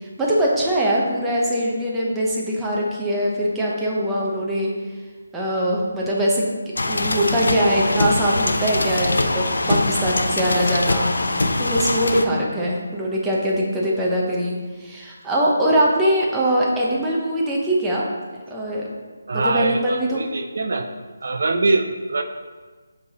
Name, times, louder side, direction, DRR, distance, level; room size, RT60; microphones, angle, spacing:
voice 1, 0.0-4.7 5.3-6.4 6.9-18.1 18.5-18.8 19.3-20.3, equal, 5° right, -5 dB, 0.7 m, -22 dB
sound 1, 6.8-12.2, left 2 dB, 85° left, 0.5 m, -22 dB
voice 2, 19.3-20.9 21.2-22.2, right 3 dB, 60° right, 5 dB, 0.5 m, -23 dB
6.9 x 3.4 x 4.1 m, 1.4 s
figure-of-eight pair, 170°, 0 cm